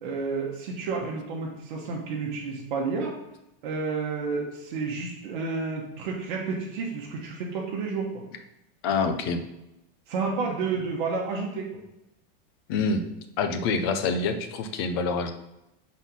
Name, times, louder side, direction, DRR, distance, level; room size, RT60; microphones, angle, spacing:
voice 1, 0.0-3.1 3.6-8.2 10.1-11.7, right 4 dB, 55° right, -2 dB, 1.1 m, -30 dB
voice 2, 8.8-9.4 12.7-13.1 13.4-15.3, left 4 dB, 25° left, 8 dB, 0.4 m, -26 dB
5.4 x 4.2 x 6.0 m, 0.89 s
supercardioid pair, 180°, 29 cm